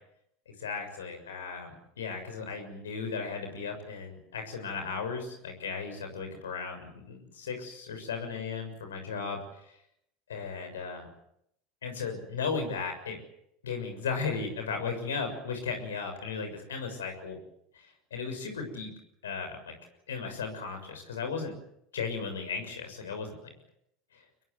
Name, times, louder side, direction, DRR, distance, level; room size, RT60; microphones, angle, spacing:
voice 1, 0.6-9.4 10.3-11.1 11.8-13.2 13.6-17.4 17.7-18.9 19.2-19.7 20.1-21.5 21.9-23.5, left 5 dB, 85° left, 6 dB, 6.7 m, -36 dB
25.0 x 22.0 x 8.1 m, 0.75 s
hypercardioid pair, 85°, 0 cm